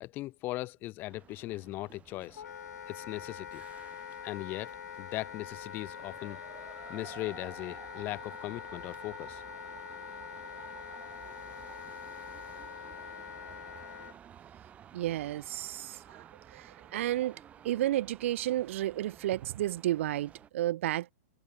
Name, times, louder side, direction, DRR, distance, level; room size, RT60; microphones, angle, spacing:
voice 1, 0.0-2.4 2.9-3.6 4.2-4.7 5.0-6.4 6.9-9.4, left 18 dB, 25° left, 0.9 m, -39 dB
sound 1, 1.1-20.5, right 9 dB, 15° right, 7.5 m, -53 dB
Wind instrument woodwind instrument, 2.3-14.2, left 8 dB, 85° left, 1.6 m, -44 dB
voice 2, 14.9-16.2 16.5-21.1, right 14 dB, 50° right, 0.5 m, -32 dB
hypercardioid pair, 160°, 9 cm